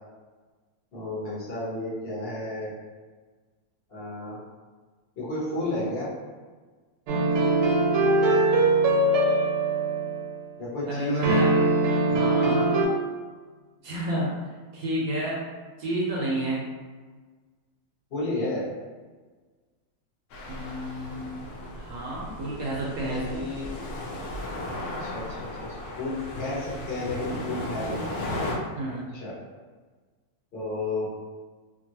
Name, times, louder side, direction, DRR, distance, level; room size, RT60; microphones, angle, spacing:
voice 1, 0.9-2.7 3.9-4.4 5.2-6.1 10.6-11.4 18.1-18.7 23.1-23.7 25.0-28.1 29.2-29.3 30.5-31.1, left 2 dB, 45° left, -8 dB, 0.9 m, -32 dB
sound 1, 7.1-10.4 11.2-12.8, right 2 dB, 85° right, 1.3 m, -22 dB
voice 2, 10.8-11.5 12.0-12.9 13.8-14.3 14.7-15.4 15.8-16.7 20.5-21.3 21.7-23.4 27.9-28.1 28.7-29.1, right 1 dB, 65° right, -4 dB, 0.9 m, -31 dB
sound 2, 20.3-28.5, left 1 dB, 70° left, 0.9 m, -35 dB
2.9 x 2.5 x 2.7 m, 1.4 s
omnidirectional pair, 2.0 m